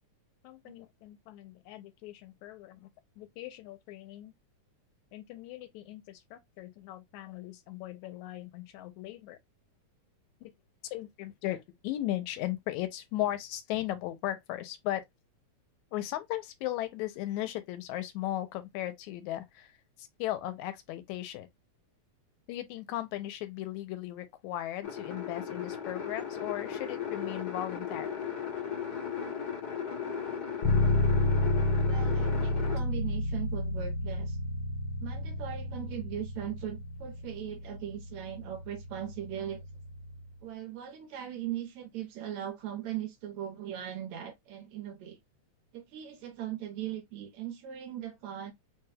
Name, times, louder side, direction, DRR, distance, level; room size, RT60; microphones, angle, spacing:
voice 1, 0.4-2.9 3.2-4.3 5.1-9.4 10.4-10.5 10.8-15.0 15.9-21.5 22.5-28.1, left 14 dB, 85° left, 2.0 m, -37 dB
sound 1, 24.8-32.8, left 7 dB, 50° left, 1.3 m, -36 dB
Bass guitar, 30.6-40.3, left 2 dB, 65° left, 2.1 m, -31 dB
voice 2, 31.8-34.4 35.0-39.6 40.4-45.2 45.7-48.5, right 11 dB, 75° right, 2.2 m, -39 dB
4.8 x 2.2 x 3.3 m
omnidirectional pair, 3.3 m